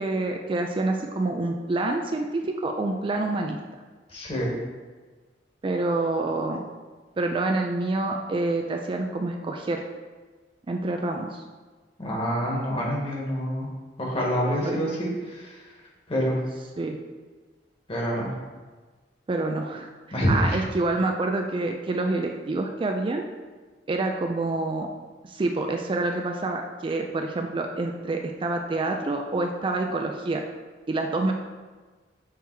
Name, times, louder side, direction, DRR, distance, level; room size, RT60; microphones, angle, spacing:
voice 1, 0.0-3.6 5.6-6.6 7.2-9.8 10.7-11.4 14.6-14.8 16.8-17.0 19.3-23.3 23.9-24.9 25.2-30.4 30.9-31.3, right 2 dB, 30° right, 3 dB, 0.3 m, -27 dB
voice 2, 4.1-4.5 12.0-13.7 14.0-15.1 15.3-15.6 16.1-16.3 17.9-18.3 20.1-20.6, equal, 30° left, -3 dB, 1.4 m, -26 dB
6.1 x 3.4 x 4.7 m, 1.4 s
head